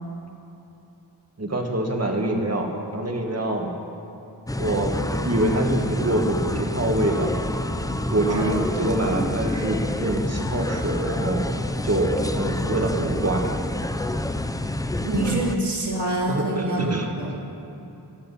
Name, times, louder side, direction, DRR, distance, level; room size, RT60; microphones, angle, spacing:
voice 1, 1.4-3.7 4.5-4.9 5.2-7.3 8.1-11.5 11.8-13.5 16.3-17.1, right 1 dB, 40° right, 1 dB, 1.8 m, -25 dB
sound 1, 4.5-15.6, left 1 dB, 10° left, 0.5 m, -27 dB
voice 2, 8.2-8.6 15.0-16.8 17.2-17.3, right 1 dB, 85° right, -4 dB, 2.7 m, -26 dB
14.5 x 13.0 x 5.6 m, 2.9 s
wide cardioid pair, 75°, 41 cm